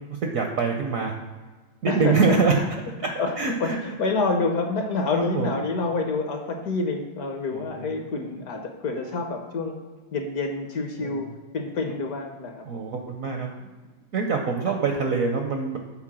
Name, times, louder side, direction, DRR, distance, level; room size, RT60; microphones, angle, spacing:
voice 1, 0.1-1.2 1.8-2.6 3.0-3.8 5.1-5.5 7.5-7.9 11.0-11.3 12.6-13.7 14.1-15.8, right 4 dB, 65° right, 3 dB, 0.8 m, -25 dB
voice 2, 3.0-9.8 10.1-11.3 11.5-12.8 14.7-14.8, left 3 dB, 60° left, 4 dB, 1.0 m, -28 dB
7.5 x 4.3 x 6.0 m, 1.4 s
omnidirectional pair, 2.1 m